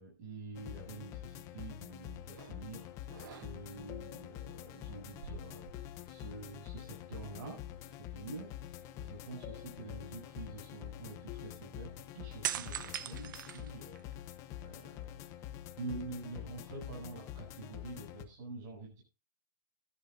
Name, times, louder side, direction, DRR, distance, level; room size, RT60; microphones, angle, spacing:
voice 1, 0.0-2.9 3.3-5.6 6.0-7.6 8.0-14.1 14.6-15.2 15.8-19.0, right 3 dB, 45° right, -1 dB, 8.0 m, -47 dB
sound 1, 0.5-18.2, left 12 dB, 25° left, 0.9 m, -46 dB
sound 2, 2.4-2.6 3.1-3.9 5.0-6.3 6.6-6.8 12.4-14.3 14.8-15.7, right 11 dB, 65° right, 0.8 m, -42 dB
20.5 x 11.0 x 2.6 m, 0.28 s
supercardioid pair, 160°, 11 cm